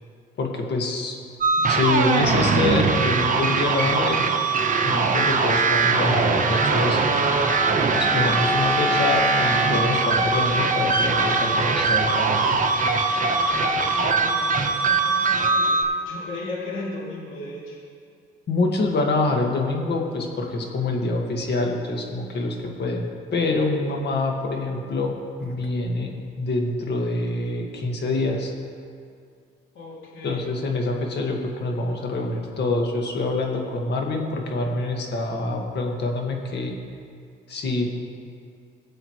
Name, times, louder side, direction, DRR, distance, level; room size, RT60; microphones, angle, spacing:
voice 1, 0.4-1.2 1.6-4.2 4.8-7.0 7.9-12.6 18.5-28.5 30.2-36.8 37.5-38.0, left 2 dB, 60° left, 1 dB, 1.8 m, -26 dB
sound 1, 1.4-15.8, right 4 dB, 40° right, 1.1 m, -21 dB
voice 2, 13.3-15.8 16.0-17.8 29.7-30.4, left 2 dB, 85° left, -5 dB, 2.8 m, -36 dB
19.5 x 7.7 x 3.2 m, 2.2 s
cardioid pair, 90°, 20 cm